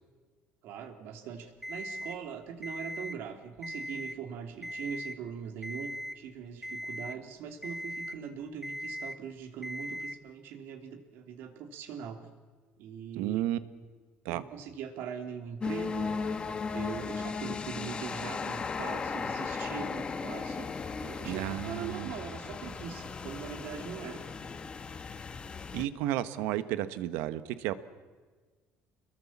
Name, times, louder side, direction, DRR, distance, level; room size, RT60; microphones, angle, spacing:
voice 1, 0.6-12.3 12.8-13.4 14.3-16.2 16.5-20.7 21.0-24.2, right 7 dB, 70° right, 6 dB, 2.9 m, -41 dB
Alarm, 1.6-2.2 2.6-3.2 3.6-4.2 4.6-5.2 5.6-6.2 6.6-7.2 7.6-8.2 8.6-9.2 9.6-10.2, equal, ahead, 1.0 m, -39 dB
voice 2, 13.1-13.6 14.2-14.4 21.2-22.1 25.7-27.7, right 13 dB, 90° right, 13 dB, 1.3 m, -32 dB
sound 1, 15.6-25.9, left 5 dB, 25° left, 1.5 m, -36 dB
26.5 x 22.0 x 7.3 m, 1.4 s
cardioid pair, 135°, 4 cm